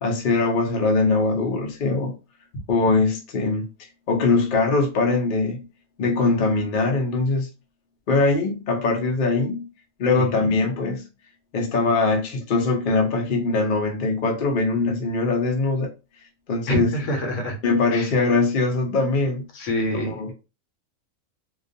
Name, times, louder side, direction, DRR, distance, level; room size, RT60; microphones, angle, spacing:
voice 1, 0.0-2.1 2.7-3.7 4.1-5.7 6.0-7.5 8.1-9.7 10.0-11.1 11.5-15.9 16.5-16.9 17.6-19.4 20.0-20.3, left 3 dB, 55° left, 0.6 m, -22 dB
voice 2, 10.1-10.5 16.7-17.6 17.9-18.1 19.5-20.3, equal, 70° left, 1.0 m, -26 dB
2.3 x 2.3 x 2.5 m
omnidirectional pair, 1.4 m